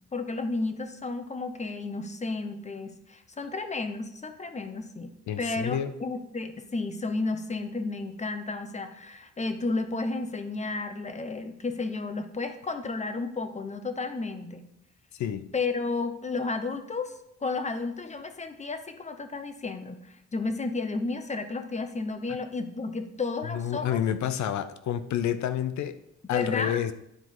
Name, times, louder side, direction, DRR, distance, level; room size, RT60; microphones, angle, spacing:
voice 1, 0.1-5.1 5.4-14.7 15.5-24.0 26.3-26.8, left 3 dB, 25° left, 8 dB, 0.9 m, -32 dB
voice 2, 5.3-5.9 15.1-15.4 23.5-26.0 26.3-26.9, left 10 dB, 70° left, 12 dB, 0.6 m, -29 dB
10.0 x 4.6 x 3.8 m, 0.78 s
cardioid pair, 90°, 30 cm